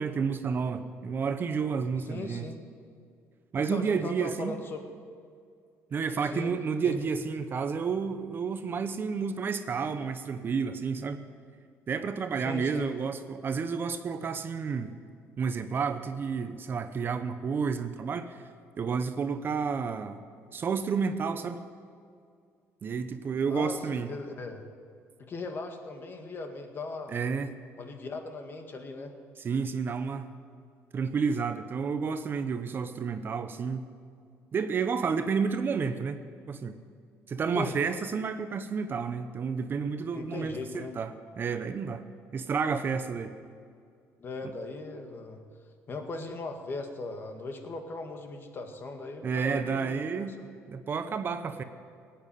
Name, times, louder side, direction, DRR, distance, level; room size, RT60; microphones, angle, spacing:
voice 1, 0.0-2.5 3.5-4.6 5.9-11.3 11.9-14.9 15.4-18.4 18.8-20.2 20.5-21.6 22.8-24.1 27.1-27.5 29.4-30.3 30.9-33.9 34.5-36.2 36.5-36.8 37.3-42.0 42.3-43.3 49.2-50.4 50.7-51.6, right 5 dB, 40° right, 10 dB, 0.9 m, -30 dB
voice 2, 2.1-2.6 3.7-4.8 6.2-6.5 6.8-7.0 12.4-12.9 23.5-24.6 25.2-27.2 27.8-29.1 37.5-37.8 40.1-40.9 44.2-45.4 45.9-50.0 50.4-50.5, left 3 dB, 40° left, 5 dB, 1.9 m, -38 dB
17.0 x 9.0 x 9.1 m, 2.3 s
cardioid pair, 115°, 6 cm